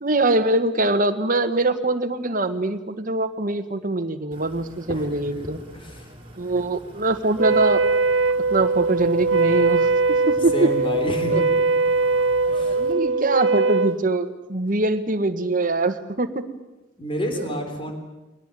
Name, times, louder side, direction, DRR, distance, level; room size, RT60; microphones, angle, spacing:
voice 1, 0.0-5.6 6.4-7.8 8.5-9.9 10.3-10.7 11.3-11.4 12.5-16.4 17.4-17.5, right 2 dB, 45° right, 8 dB, 1.5 m, -23 dB
sound 1, 4.3-12.9, equal, 30° right, 3.6 m, -45 dB
voice 2, 5.7-6.1 10.5-11.5 12.5-12.8 17.0-17.9, equal, 30° left, 5 dB, 3.6 m, -29 dB
Wind instrument woodwind instrument, 7.4-14.0, right 3 dB, 85° right, 1.2 m, -21 dB
22.0 x 19.0 x 9.0 m, 1.1 s
head